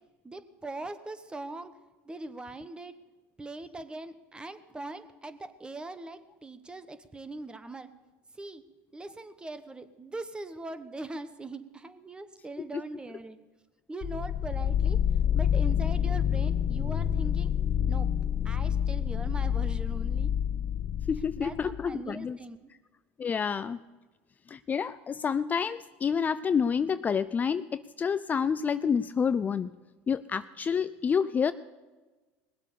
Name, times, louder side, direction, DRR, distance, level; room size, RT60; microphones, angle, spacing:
voice 1, 0.2-1.7 2.1-2.9 3.4-7.9 8.4-8.6 8.9-13.4 13.9-15.0 15.3-17.5 17.9-18.1 18.4-20.3 21.4-22.6, right 2 dB, 15° right, 11 dB, 1.1 m, -41 dB
sound 1, 14.0-21.8, left 9 dB, 45° left, 1.3 m, -28 dB
voice 2, 21.1-22.4 23.2-23.8 24.5-29.7 30.1-31.5, left 6 dB, 25° left, 13 dB, 0.4 m, -28 dB
20.0 x 8.2 x 6.9 m, 1.2 s
supercardioid pair, 100°, 6 cm